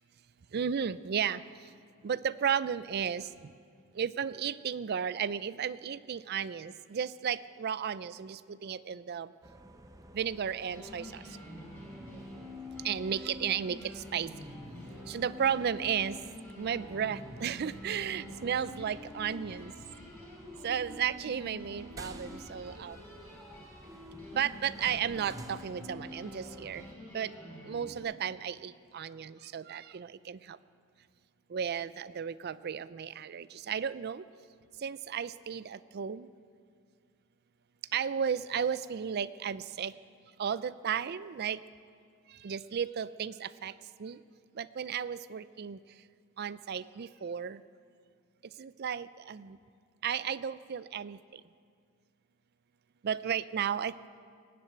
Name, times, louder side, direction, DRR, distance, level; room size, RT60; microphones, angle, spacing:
voice 1, 0.5-1.7 2.0-3.5 3.9-9.3 10.1-11.4 12.8-14.5 15.1-16.2 16.6-19.7 20.6-23.0 24.3-27.3 27.6-30.6 31.5-34.3 34.8-36.3 37.9-39.9 40.4-41.6 42.3-44.2 44.5-45.8 46.4-47.6 48.6-49.6 50.0-51.4 53.0-53.9, right 8 dB, 50° right, 16 dB, 0.4 m, -34 dB
sound 1, 9.4-26.9, right 1 dB, 15° right, 0.8 m, -53 dB
sound 2, 10.7-28.0, left 1 dB, 5° left, 4.6 m, -47 dB
19.5 x 7.7 x 8.7 m, 2.2 s
head